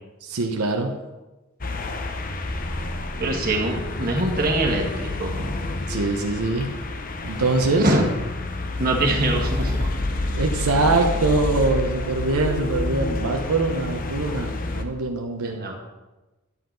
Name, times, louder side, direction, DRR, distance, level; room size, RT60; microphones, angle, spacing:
voice 1, 0.2-0.9 5.9-6.7 7.2-7.9 10.3-15.6, right 3 dB, 85° right, 3 dB, 0.9 m, -23 dB
sound 1, 1.6-14.8, left 2 dB, 40° left, 0.7 m, -29 dB
voice 2, 3.2-5.6 7.8-8.0 8.8-9.9 15.4-15.7, right 2 dB, 40° right, 1 dB, 1.7 m, -24 dB
11.0 x 7.9 x 3.9 m, 1.1 s
head